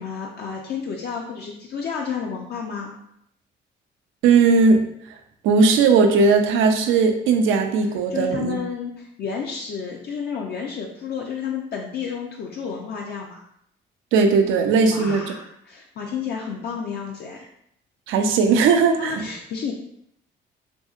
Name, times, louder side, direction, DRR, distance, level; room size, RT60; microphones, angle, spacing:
voice 1, 0.0-3.0 8.1-13.4 14.9-17.5 19.0-19.7, left 6 dB, 55° left, 0 dB, 0.4 m, -31 dB
voice 2, 4.2-4.8 5.4-8.6 14.1-15.2 18.1-19.2, right 4 dB, 85° right, 6 dB, 0.4 m, -17 dB
2.7 x 2.6 x 2.3 m, 0.73 s
cardioid pair, 90°, 20 cm